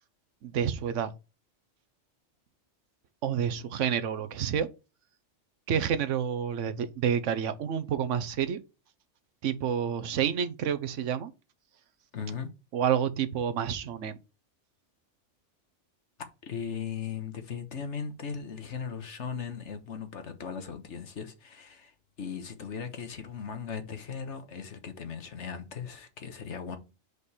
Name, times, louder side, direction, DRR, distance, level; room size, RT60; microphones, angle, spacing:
voice 1, 0.4-1.1 3.2-4.7 5.7-8.6 9.4-11.3 12.7-14.2, right 8 dB, 85° right, 1.1 m, -29 dB
voice 2, 12.1-12.5 16.5-21.9 22.2-26.8, left 6 dB, 70° left, 1.5 m, -38 dB
6.7 x 5.1 x 4.2 m
omnidirectional pair, 1.2 m